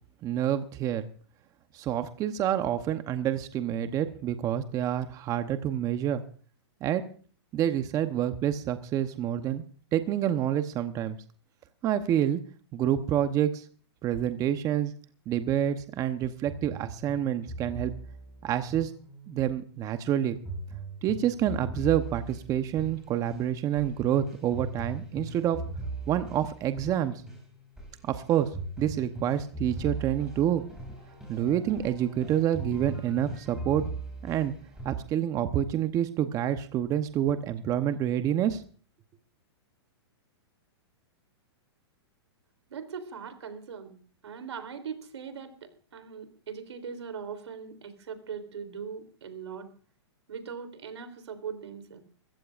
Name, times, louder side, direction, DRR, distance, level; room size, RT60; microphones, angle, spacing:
voice 1, 0.2-1.1 1.7-6.2 6.8-7.0 7.5-9.6 9.9-11.2 11.8-12.4 12.7-13.7 14.0-14.9 15.3-17.9 18.4-18.9 19.3-20.4 21.0-25.6 26.1-27.2 28.0-28.5 28.8-30.6 31.3-33.8 34.2-34.5 34.8-38.6, right 10 dB, 25° right, 9 dB, 0.9 m, -28 dB
sound 1, 16.5-19.6 20.4-35.2, right 2 dB, 5° right, 7.7 m, -40 dB
voice 2, 42.7-44.0 44.2-49.7 50.3-52.0, right 6 dB, 85° right, 9 dB, 3.4 m, -40 dB
23.0 x 15.5 x 2.5 m, 0.41 s
hypercardioid pair, 140°, 14 cm